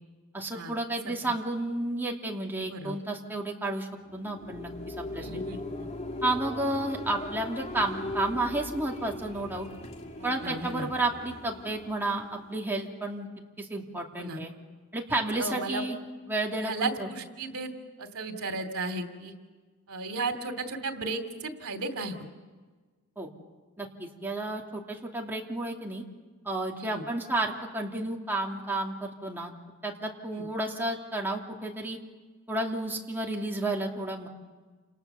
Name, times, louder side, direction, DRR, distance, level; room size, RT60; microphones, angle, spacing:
voice 1, 0.3-5.3 6.2-9.7 10.2-13.3 13.6-14.5 14.9-16.0 16.3-17.1 23.2-23.3 23.8-26.0 26.4-29.5 29.8-32.0 32.5-34.3, right 2 dB, 10° right, -1 dB, 2.8 m, -31 dB
sound 1, 4.1-12.7, left 1 dB, 30° left, 2.7 m, -39 dB
voice 2, 5.2-5.6 10.2-10.9 14.1-14.4 15.1-15.8 16.6-17.7 18.0-19.3 19.9-22.2 26.8-27.0 30.3-30.4, right 3 dB, 85° right, 8 dB, 2.7 m, -35 dB
29.5 x 28.0 x 7.0 m, 1.4 s
head